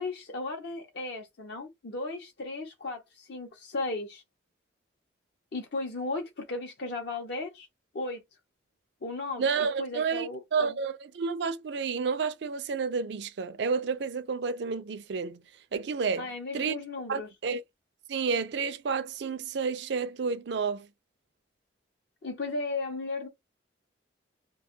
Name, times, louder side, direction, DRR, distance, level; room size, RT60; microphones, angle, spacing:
voice 1, 0.0-4.2 5.5-7.7 7.9-8.2 9.0-9.4 9.8-10.7 16.2-17.3 22.2-23.3, left 3 dB, 60° left, 0.6 m, -35 dB
voice 2, 9.4-15.4 15.7-16.8 17.1-17.6 18.1-20.9, right 5 dB, 65° right, 0.4 m, -30 dB
2.4 x 2.2 x 2.7 m
head